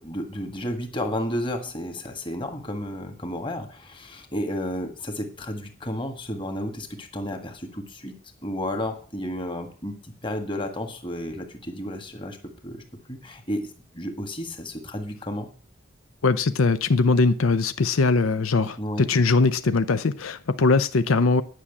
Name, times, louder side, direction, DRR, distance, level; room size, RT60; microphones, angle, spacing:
voice 1, 0.0-8.1 8.4-12.4 12.6-12.8 13.1-15.5 18.8-19.1, left 1 dB, 25° left, 1.7 m, -32 dB
voice 2, 16.2-21.4, left 3 dB, 85° left, 0.6 m, -21 dB
10.0 x 6.3 x 8.4 m
head